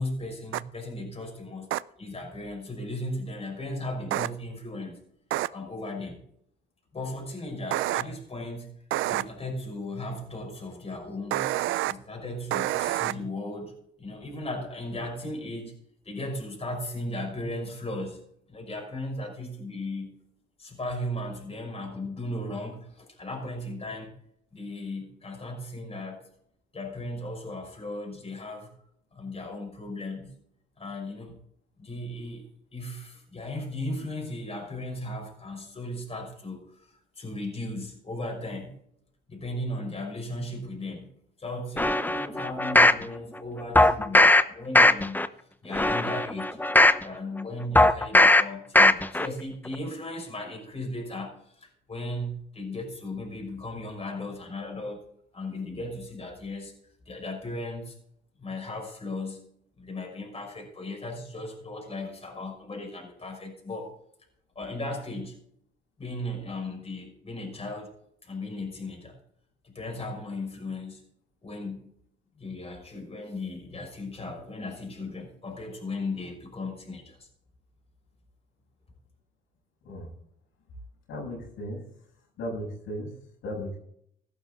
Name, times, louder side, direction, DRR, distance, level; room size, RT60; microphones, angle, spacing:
voice 1, 0.0-1.7 2.0-5.0 5.5-6.2 6.9-8.7 9.1-11.5 11.8-13.7 14.0-15.7 16.0-18.2 18.5-20.2 20.6-24.1 24.5-26.3 26.7-28.7 29.1-30.3 30.8-31.4 31.8-32.4 32.7-38.8 39.3-41.1 41.4-45.2 45.6-46.6 47.0-55.0 55.3-56.7 57.1-58.0 58.4-59.4 59.8-63.9 64.5-65.4 66.0-67.9 68.2-69.2 69.6-71.1 71.4-71.9 72.4-77.3, left 1 dB, 30° left, 0 dB, 5.9 m, -36 dB
sound 1, 0.5-0.6 1.7-1.8 4.1-4.3 5.3-5.5 7.7-8.0 8.9-9.2 11.3-11.9 12.5-13.1, right 15 dB, 85° right, 0.5 m, -27 dB
sound 2, 41.8-43.0 43.8-44.4 44.7-45.3 45.7-47.0 47.8-48.4 48.8-49.3 49.7-49.8, left 2 dB, 10° left, 0.8 m, -18 dB
voice 2, 81.1-81.8 82.4-83.1 83.4-83.8, equal, 85° left, -1 dB, 7.0 m, -35 dB
15.5 x 12.0 x 3.9 m, 0.69 s
cardioid pair, 90°, 20 cm